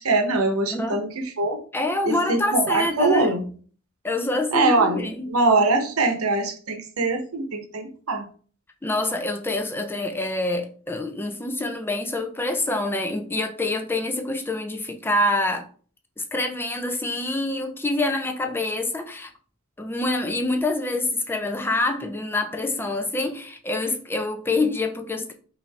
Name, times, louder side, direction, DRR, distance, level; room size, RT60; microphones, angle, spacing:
voice 1, 0.0-1.6 2.0-3.4 4.5-8.2, right 3 dB, 85° right, 0.9 m, -23 dB
voice 2, 0.7-1.0 1.7-3.3 4.0-5.3 8.8-15.7 16.2-19.3 19.8-25.3, left 2 dB, 10° left, 0.5 m, -26 dB
5.6 x 2.7 x 3.2 m
head